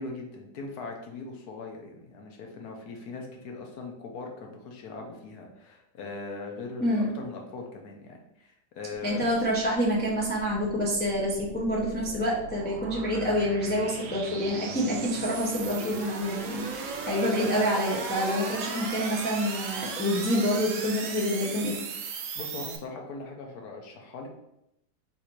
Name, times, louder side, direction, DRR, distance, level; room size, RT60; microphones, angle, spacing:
voice 1, 0.0-9.3 22.3-24.3, left 3 dB, 70° left, 2 dB, 1.3 m, -40 dB
sound 1, 8.8-22.8, right 5 dB, 65° right, 0.8 m, -37 dB
voice 2, 9.0-21.8, equal, 15° left, -5 dB, 0.3 m, -27 dB
4.1 x 2.7 x 4.5 m, 0.82 s
omnidirectional pair, 1.8 m